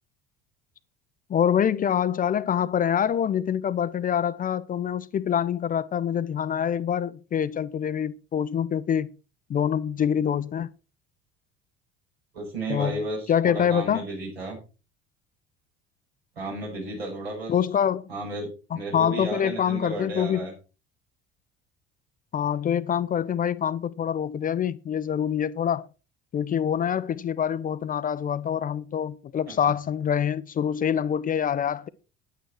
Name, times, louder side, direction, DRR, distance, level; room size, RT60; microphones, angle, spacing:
voice 1, 1.3-9.1 9.5-10.7 12.7-13.0 13.3-14.1 17.5-18.0 18.9-20.5 22.3-25.9 26.3-31.9, left 8 dB, 25° left, 0.6 m, -25 dB
voice 2, 12.3-14.6 16.4-17.5 18.1-18.5 18.7-20.5 29.5-29.6, right 2 dB, 75° right, 6.3 m, -33 dB
10.0 x 9.3 x 4.6 m
figure-of-eight pair, 60°, 31 cm